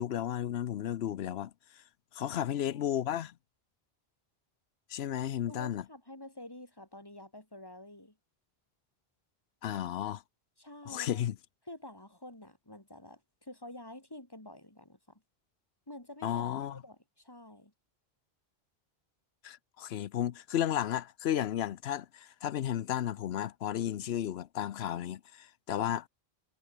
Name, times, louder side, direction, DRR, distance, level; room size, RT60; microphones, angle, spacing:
voice 1, 0.0-1.5 2.1-3.3 4.9-5.8 9.6-10.2 10.9-11.4 16.2-16.8 19.4-26.1, left 11 dB, 85° left, 0.9 m, -33 dB
voice 2, 2.2-2.9 5.5-8.2 10.6-11.2 11.7-15.2 15.9-16.5 16.8-17.7, left 1 dB, 20° left, 2.8 m, -49 dB
omnidirectional pair, 1.0 m